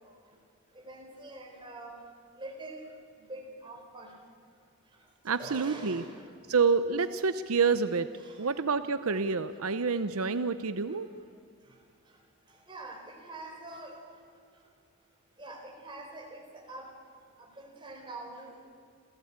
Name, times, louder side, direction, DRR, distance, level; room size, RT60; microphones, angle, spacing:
voice 1, 0.9-1.9 2.4-2.8 3.3-4.1 5.4-6.1 6.8-7.0 8.2-8.5 12.7-13.9 15.4-16.4 16.7-16.9 17.4-18.7, right 2 dB, 20° right, 0 dB, 4.3 m, -44 dB
voice 2, 5.2-6.0 6.5-8.1 8.4-11.1, right 5 dB, 80° right, 12 dB, 0.7 m, -28 dB
28.0 x 16.0 x 8.8 m, 2.2 s
head